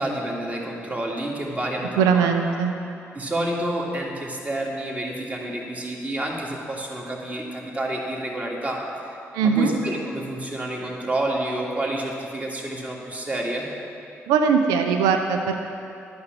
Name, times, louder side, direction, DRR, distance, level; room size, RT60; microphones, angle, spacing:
voice 1, 0.0-2.3 3.1-8.8 9.4-13.7, right 1 dB, 20° right, -1 dB, 2.1 m, -29 dB
voice 2, 2.0-2.7 9.3-9.7 14.3-15.5, right 6 dB, 65° right, 5 dB, 0.6 m, -20 dB
12.5 x 6.2 x 7.2 m, 2.6 s
figure-of-eight pair, 40°, 7 cm